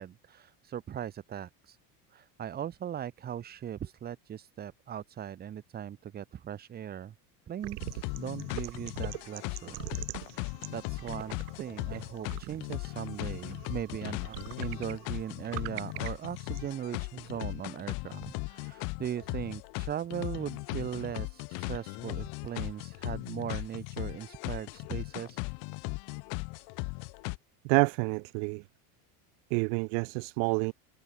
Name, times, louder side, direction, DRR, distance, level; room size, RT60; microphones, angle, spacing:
voice 1, 0.0-1.8 2.1-7.1 7.5-9.8 10.2-25.4, right 9 dB, 20° right, 1.2 m, -39 dB
sound 1, 7.6-16.8, right 27 dB, 85° right, 1.2 m, -44 dB
sound 2, 7.8-27.4, left 34 dB, 60° left, 3.5 m, -38 dB
voice 2, 27.6-28.6 29.5-30.7, right 39 dB, 65° right, 1.1 m, -28 dB
cardioid pair, 175°, 44 cm